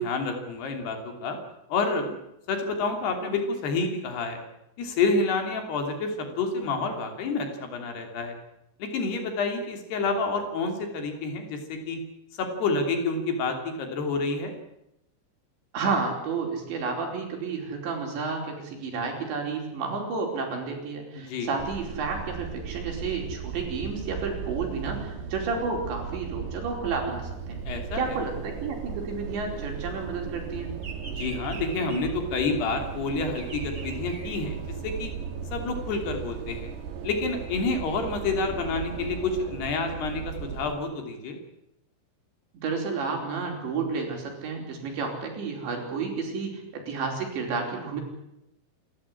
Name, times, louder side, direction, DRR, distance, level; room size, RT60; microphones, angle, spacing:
voice 1, 0.0-1.4 1.7-2.2 2.5-4.4 4.8-8.4 8.8-12.0 12.3-14.5 21.2-21.5 27.7-28.2 31.2-35.1 35.5-36.7 37.0-41.4, left 3 dB, 70° left, 4 dB, 5.0 m, -29 dB
voice 2, 15.7-27.6 27.9-30.8 42.6-48.0, right 4 dB, 85° right, 2 dB, 6.9 m, -31 dB
sound 1, 21.6-40.7, right 7 dB, 70° right, 4.1 m, -36 dB
Bird vocalization bird call bird song, 27.2-30.1 30.4-35.1, right 4 dB, 20° right, 4.7 m, -44 dB
27.5 x 13.0 x 9.8 m, 0.85 s
omnidirectional pair, 5.0 m